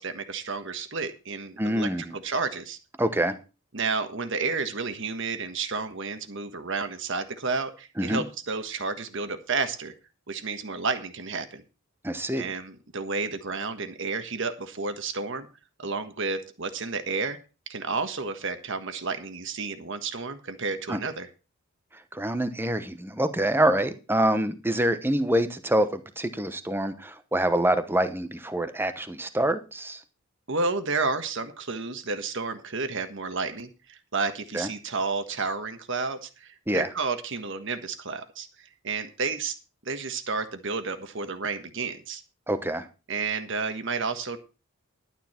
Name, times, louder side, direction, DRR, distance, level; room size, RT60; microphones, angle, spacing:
voice 1, 0.0-2.8 3.7-9.9 10.3-11.6 12.4-15.5 15.8-17.4 17.7-21.3 30.5-39.5 39.8-42.2 43.1-44.4, right 4 dB, 60° right, 1.4 m, -31 dB
voice 2, 1.6-2.1 3.0-3.3 8.0-8.3 12.0-12.5 20.9-21.0 22.1-30.0 34.5-34.7 36.7-36.9 42.5-42.9, right 1 dB, 10° right, 0.9 m, -26 dB
11.5 x 9.5 x 4.4 m
head